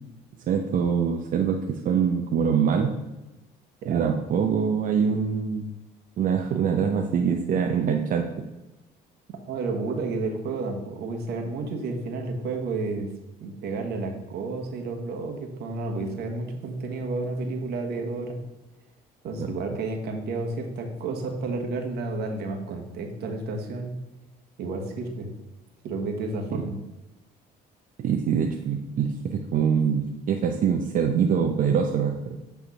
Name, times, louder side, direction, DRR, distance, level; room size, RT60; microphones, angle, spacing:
voice 1, 0.5-2.9 3.9-5.7 6.2-8.3 19.4-19.5 28.0-32.4, right 7 dB, 55° right, 3 dB, 0.7 m, -24 dB
voice 2, 3.8-4.2 9.5-13.1 13.4-18.4 19.2-23.9 24.6-25.3 25.8-26.8, right 3 dB, 75° right, 3 dB, 1.4 m, -31 dB
8.6 x 3.5 x 5.6 m, 1.0 s
cardioid pair, 110°, 17 cm